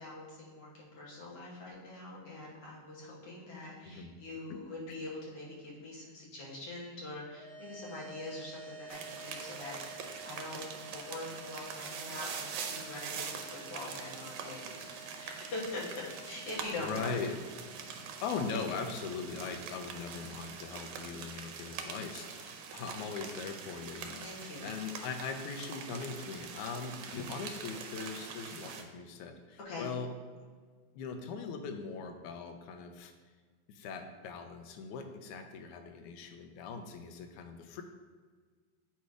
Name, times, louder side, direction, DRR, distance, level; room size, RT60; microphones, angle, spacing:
voice 1, 0.0-17.2 24.2-24.7 29.6-29.9, left 2 dB, 55° left, -5 dB, 2.1 m, -44 dB
sound 1, 7.3-21.8, right 2 dB, 5° left, 1.0 m, -52 dB
sound 2, 8.9-28.8, right 6 dB, 75° right, 1.9 m, -44 dB
voice 2, 16.8-17.4 18.2-24.2 24.6-30.1 31.0-33.1 33.7-37.8, left 5 dB, 85° left, 5 dB, 2.0 m, -40 dB
8.3 x 3.2 x 4.8 m, 1.5 s
omnidirectional pair, 3.5 m